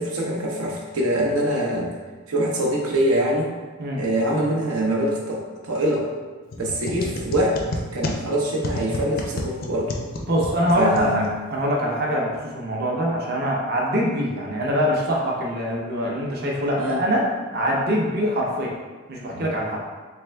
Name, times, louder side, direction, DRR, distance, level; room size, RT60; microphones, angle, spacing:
voice 1, 0.0-1.9 2.3-3.5 4.0-6.1 6.6-7.6 7.9-9.9 10.7-11.3 16.8-17.0 19.3-19.5, right 1 dB, 90° right, -1 dB, 0.8 m, -24 dB
sound 1, 6.5-11.6, left 2 dB, 45° left, 0.4 m, -31 dB
voice 2, 10.3-11.2 11.5-18.7 19.1-19.8, equal, 45° right, -2 dB, 0.6 m, -23 dB
3.5 x 3.4 x 3.3 m, 1.4 s
head